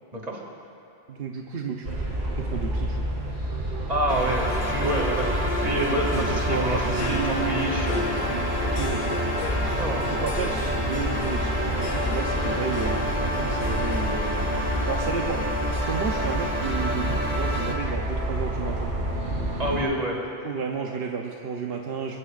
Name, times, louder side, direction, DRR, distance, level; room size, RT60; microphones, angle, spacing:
voice 1, 1.1-2.0 2.3-3.0 5.9-9.2 9.6-15.4 15.8-19.1 20.0-20.2 20.4-22.2, right 5 dB, 65° right, 1 dB, 1.1 m, -32 dB
sound 1, 1.8-19.8, right 1 dB, 85° right, 3.2 m, -29 dB
voice 2, 3.9-8.1 9.5-10.2 19.6-20.2, right 1 dB, 40° right, -1 dB, 2.5 m, -28 dB
sound 2, 4.1-17.8, equal, 10° right, 2.0 m, -30 dB
Harp, 4.5-16.7, left 6 dB, 55° left, 0.6 m, -36 dB
21.5 x 21.5 x 2.5 m, 2.7 s
omnidirectional pair, 1.0 m